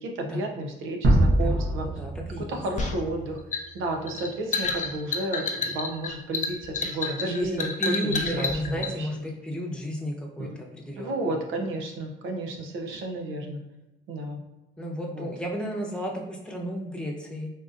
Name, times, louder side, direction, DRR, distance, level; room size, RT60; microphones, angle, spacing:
voice 1, 0.0-1.9 2.5-3.4 3.7-7.7 8.0-9.1 10.4-10.6 11.0-13.6 14.1-14.4 15.1-15.3, right 1 dB, 90° right, 3 dB, 0.6 m, -32 dB
sound 1, 1.0-4.0, right 1 dB, 70° right, 1.0 m, -24 dB
voice 2, 1.4-2.6 7.2-10.5 10.7-11.3 14.8-17.5, equal, 5° left, -2 dB, 0.8 m, -33 dB
sound 2, 2.8-8.9, left 4 dB, 40° left, 0.5 m, -30 dB
3.7 x 2.6 x 2.5 m, 1.0 s
cardioid pair, 90°, 20 cm